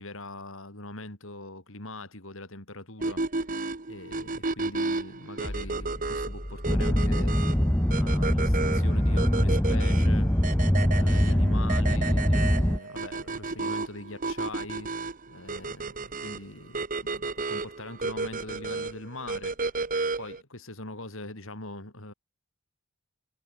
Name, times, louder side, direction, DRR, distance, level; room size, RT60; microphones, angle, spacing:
voice 1, 0.0-3.2 3.8-7.6 7.9-10.3 10.9-14.9 15.3-19.5 20.2-22.1, left 2 dB, 60° left, 5.1 m, -42 dB
sound 1, 3.0-20.4, right 3 dB, 35° right, 1.2 m, -33 dB
sound 2, 5.4-8.9, equal, 25° left, 2.1 m, -40 dB
sound 3, 6.7-12.8, equal, 10° left, 0.9 m, -23 dB
head